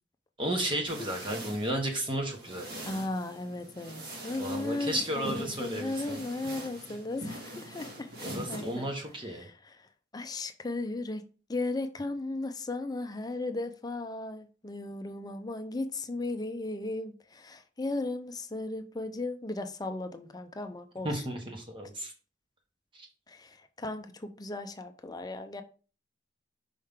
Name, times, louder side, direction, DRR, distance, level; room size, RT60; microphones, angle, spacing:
voice 1, 0.4-3.0 4.4-6.2 8.2-9.5 21.0-22.1 22.9-23.1, right 1 dB, 30° right, 1.3 m, -33 dB
sound 1, 0.9-9.2, right 1 dB, 60° right, 2.1 m, -43 dB
voice 2, 2.9-8.9 9.4-21.1 23.3-25.6, left 2 dB, 20° left, 0.6 m, -36 dB
5.5 x 5.1 x 3.6 m
head